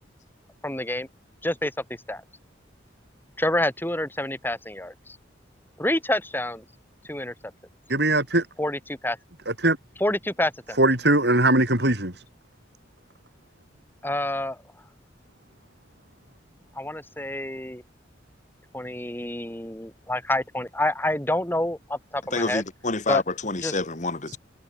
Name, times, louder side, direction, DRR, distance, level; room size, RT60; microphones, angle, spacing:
voice 1, 0.6-1.1 1.4-1.7 2.1-2.2 3.4-5.2 5.8-6.6 7.0-7.3 8.6-9.2 10.0-10.8 14.0-14.6 16.8-17.8 18.7-22.6 23.1-23.2 23.6-23.8, left 1 dB, 10° left, 4.1 m, -27 dB
voice 2, 7.9-8.5 9.5-9.8 10.8-12.2, right 2 dB, 60° right, 7.9 m, -21 dB
voice 3, 22.3-24.4, left 3 dB, 40° left, 1.6 m, -27 dB
head